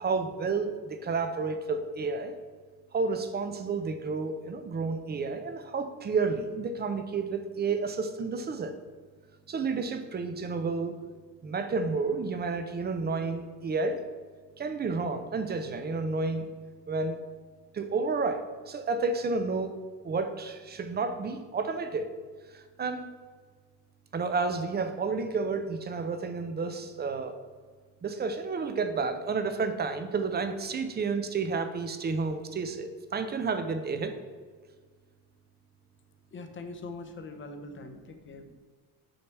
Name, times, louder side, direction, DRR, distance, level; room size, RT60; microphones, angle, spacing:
voice 1, 0.0-2.3 2.9-8.8 9.5-11.0 11.4-14.0 14.6-16.5 16.9-17.2 17.7-19.8 20.0-22.1 22.5-23.1 24.1-27.4 28.0-34.1, right 4 dB, 25° right, 8 dB, 0.6 m, -31 dB
voice 2, 36.3-38.5, left 3 dB, 30° left, 7 dB, 0.8 m, -42 dB
6.4 x 5.8 x 4.6 m, 1.5 s
cardioid pair, 145°, 42 cm